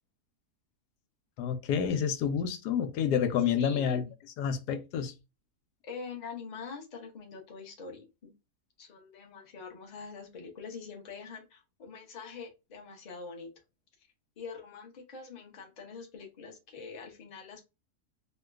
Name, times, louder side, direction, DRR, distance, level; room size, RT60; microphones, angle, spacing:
voice 1, 1.4-4.0 4.4-5.1, left 8 dB, 85° left, 1.1 m, -29 dB
voice 2, 3.6-4.1 5.8-8.3 8.8-13.5 14.4-17.6, left 5 dB, 35° left, 0.7 m, -44 dB
2.9 x 2.2 x 3.4 m
omnidirectional pair, 1.7 m